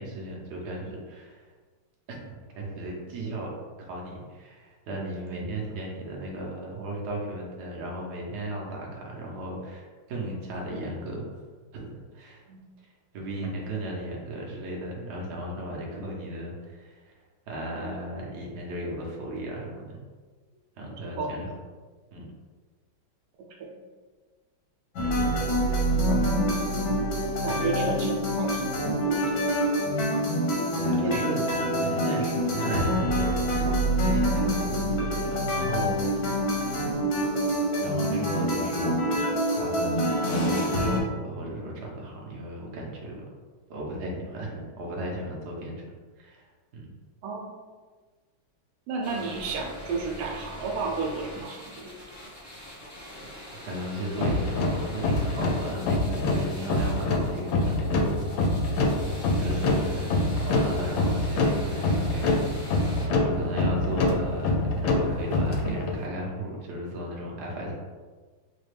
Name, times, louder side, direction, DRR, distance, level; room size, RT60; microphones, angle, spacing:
voice 1, 0.0-1.4 2.1-3.5 3.8-11.2 11.7-12.4 13.1-17.0 17.5-20.0 20.8-21.5 22.1-22.3 25.6-25.9 27.5-27.7 30.8-36.4 37.8-38.9 39.6-43.3 43.7-45.8 46.2-46.5 46.7-46.9 53.7-58.0 58.3-59.0 59.3-62.5 63.2-64.5 64.7-67.7, right 1 dB, 60° right, -2 dB, 1.2 m, -36 dB
voice 2, 20.8-21.4 23.6-23.8 25.9-26.3 27.4-29.4 31.0-31.4 47.2-47.5 48.9-51.9, right 4 dB, 90° right, 0 dB, 1.4 m, -32 dB
sound 1, 25.0-41.0, equal, 65° left, 1.0 m, -26 dB
sound 2, 49.0-63.1, left 1 dB, 25° left, 0.4 m, -44 dB
sound 3, 54.2-66.0, left 2 dB, 80° left, 1.3 m, -25 dB
4.1 x 2.2 x 3.2 m, 1.4 s
omnidirectional pair, 2.2 m